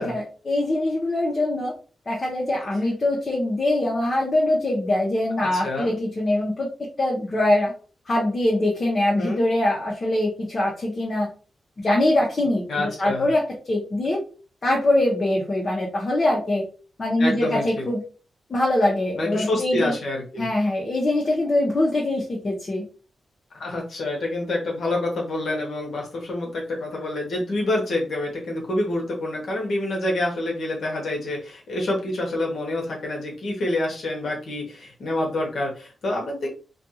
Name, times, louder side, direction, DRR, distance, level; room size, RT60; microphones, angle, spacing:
voice 1, 0.0-1.7 2.1-6.7 7.0-7.7 8.1-11.3 11.8-14.2 14.6-16.6 17.0-18.0 18.5-19.9 20.4-22.8, left 1 dB, 45° left, -3 dB, 0.7 m, -23 dB
voice 2, 5.5-6.0 9.1-9.4 12.7-13.3 17.2-17.8 19.2-20.5 23.6-36.5, left 1 dB, 75° left, -1 dB, 0.9 m, -27 dB
2.5 x 2.3 x 2.7 m, 0.37 s
cardioid pair, 85°, 0 cm